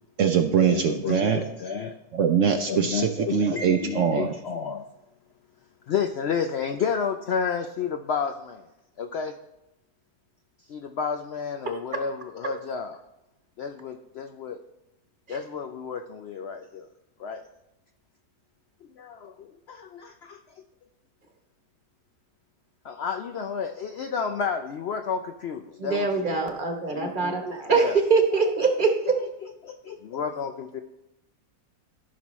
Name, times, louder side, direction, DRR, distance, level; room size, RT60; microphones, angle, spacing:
voice 1, 0.2-1.4 2.1-4.3, right 7 dB, 65° right, 6 dB, 0.8 m, -23 dB
voice 2, 0.7-2.0 2.7-4.9 5.9-8.6 9.0-9.3 10.7-13.0 13.6-14.6 15.3-16.9 17.2-17.4 19.0-20.4 22.8-26.4 26.9-28.0 28.3-28.4 28.8-28.9 29.4-30.8, left 6 dB, 85° left, 6 dB, 0.5 m, -31 dB
voice 3, 25.8-29.1, right 4 dB, 35° right, 4 dB, 1.1 m, -23 dB
14.0 x 6.0 x 3.1 m, 0.94 s
omnidirectional pair, 1.7 m